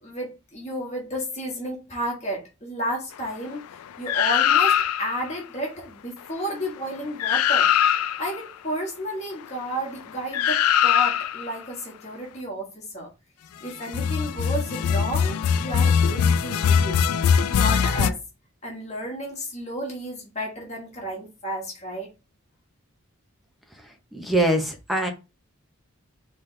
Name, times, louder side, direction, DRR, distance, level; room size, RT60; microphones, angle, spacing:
voice 1, 0.0-3.6 4.0-7.7 8.2-13.1 13.6-18.2 18.6-22.1, equal, 30° left, 1.4 m, -32 dB
sound 1, 4.1-5.2 6.9-7.0 7.2-8.4 10.3-11.5 13.8-18.1, left 8 dB, 80° left, 0.4 m, -21 dB
voice 2, 24.1-25.1, right 1 dB, ahead, 0.7 m, -23 dB
4.3 x 3.3 x 3.2 m
head